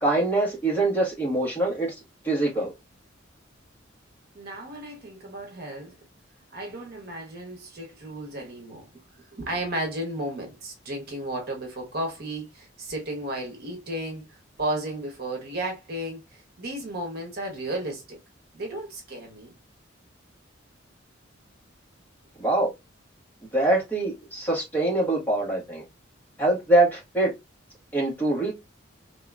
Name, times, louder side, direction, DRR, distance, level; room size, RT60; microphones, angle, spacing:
voice 1, 0.0-1.9 2.2-2.7 22.4-22.7 23.5-25.8 26.4-27.3 27.9-28.5, right 2 dB, 10° left, 1.5 m, -24 dB
voice 2, 4.3-6.0 6.5-8.9 9.1-18.2 18.5-19.5, right 1 dB, 50° right, 1.1 m, -34 dB
3.7 x 2.9 x 2.4 m
head